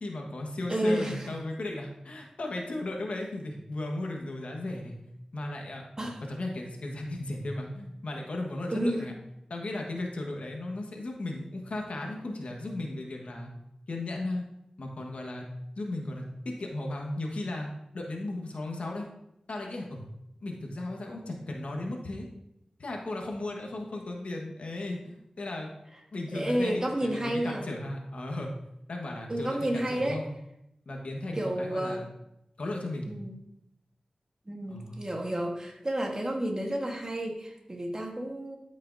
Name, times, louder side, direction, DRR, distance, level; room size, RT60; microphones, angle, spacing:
voice 1, 0.0-5.0 5.3-5.8 6.3-9.1 9.5-13.5 13.9-14.4 14.8-15.4 15.8-19.1 19.5-20.0 20.4-22.3 22.8-25.7 26.1-28.6 28.9-30.3 30.8-32.1 32.6-33.2 34.7-35.0, left 2 dB, 80° left, 1 dB, 1.3 m, -36 dB
voice 2, 0.7-1.3 6.0-6.2 8.7-9.1 26.3-27.7 29.3-30.2 31.3-32.0 33.1-33.3 34.5-38.6, right 1 dB, 30° right, 2 dB, 1.3 m, -30 dB
12.5 x 5.5 x 2.7 m, 0.83 s
wide cardioid pair, 75°, 2 cm